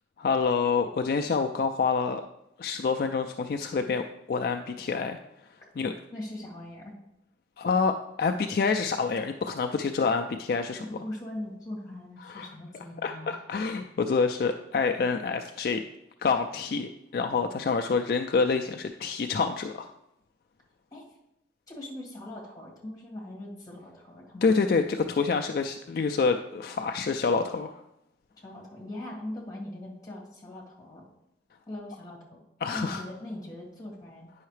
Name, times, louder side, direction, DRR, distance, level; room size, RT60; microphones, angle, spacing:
voice 1, 0.2-2.2 2.6-4.0 4.3-5.2 5.8-5.9 7.6-10.8 12.2-12.5 12.7-15.8 16.2-19.9 24.4-27.8 32.6-33.0, left 5 dB, 55° left, 5 dB, 0.3 m, -27 dB
voice 2, 6.1-6.9 10.8-13.4 20.9-21.1 21.7-24.8 28.4-31.1 31.7-34.3, left 1 dB, 20° left, -3 dB, 1.9 m, -40 dB
9.3 x 5.6 x 3.2 m, 0.84 s
head